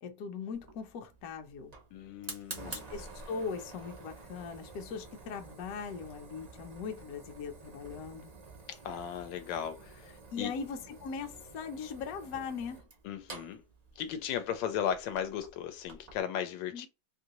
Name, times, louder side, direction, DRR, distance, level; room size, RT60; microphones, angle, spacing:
voice 1, 0.0-1.7 2.6-8.3 10.3-12.8 16.7-16.9, left 5 dB, 65° left, 1.0 m, -40 dB
Fire, 0.5-16.2, right 3 dB, 65° right, 0.3 m, -49 dB
voice 2, 1.9-2.9 8.7-10.5 13.0-13.6 14.0-16.9, left 9 dB, 85° left, 1.2 m, -36 dB
3.0 x 2.6 x 2.9 m
omnidirectional pair, 1.9 m